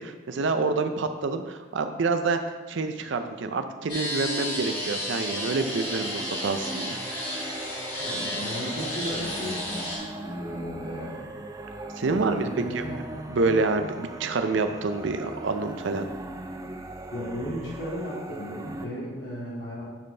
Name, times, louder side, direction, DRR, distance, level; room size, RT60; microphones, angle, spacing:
voice 1, 0.0-2.4 2.7-7.0 12.0-12.5 12.7-12.8 13.3-16.1, right 3 dB, 75° right, 8 dB, 0.5 m, -27 dB
sound 1, 3.9-10.0, left 1 dB, 25° left, 1.8 m, -32 dB
sound 2, 5.2-18.8, right 2 dB, 20° right, 0.4 m, -39 dB
voice 2, 8.0-11.3 12.1-13.0 17.1-19.9, equal, 80° left, -8 dB, 2.2 m, -35 dB
9.9 x 4.2 x 3.3 m, 1.3 s
head